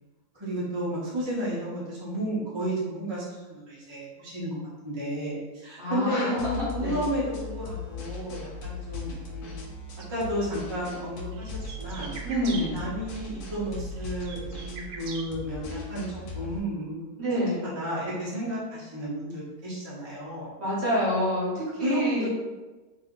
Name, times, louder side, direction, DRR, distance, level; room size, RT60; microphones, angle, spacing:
voice 1, 0.3-4.6 4.8-9.7 10.1-12.2 12.7-16.1 16.3-17.2 17.6-20.5 21.8-22.3, right 1 dB, 25° right, -8 dB, 0.6 m, -32 dB
voice 2, 5.8-7.0 12.2-12.8 17.2-17.7 20.6-22.3, equal, 50° right, -7 dB, 1.1 m, -27 dB
sound 1, 6.4-16.6, left 3 dB, 75° left, 1.1 m, -38 dB
sound 2, 10.0-10.1 11.0-12.6 13.7-15.2, right 5 dB, 70° right, 0.9 m, -41 dB
2.7 x 2.6 x 3.6 m, 1.2 s
omnidirectional pair, 1.7 m